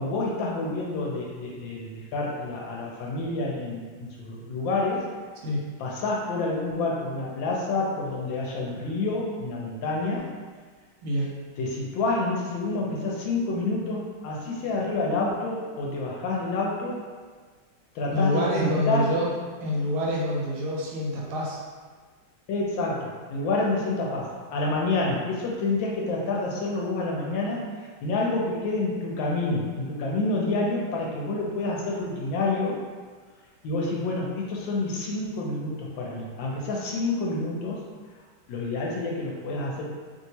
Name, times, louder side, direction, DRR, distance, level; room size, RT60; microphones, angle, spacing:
voice 1, 0.0-5.0 5.8-10.3 11.6-17.0 17.9-19.3 22.5-27.6 28.0-32.8 33.6-37.8 38.5-39.9, left 2 dB, 75° left, -2 dB, 1.2 m, -28 dB
voice 2, 18.1-19.3 19.6-21.6, equal, 85° right, -4 dB, 1.6 m, -26 dB
3.2 x 2.7 x 2.7 m, 1.5 s
omnidirectional pair, 2.3 m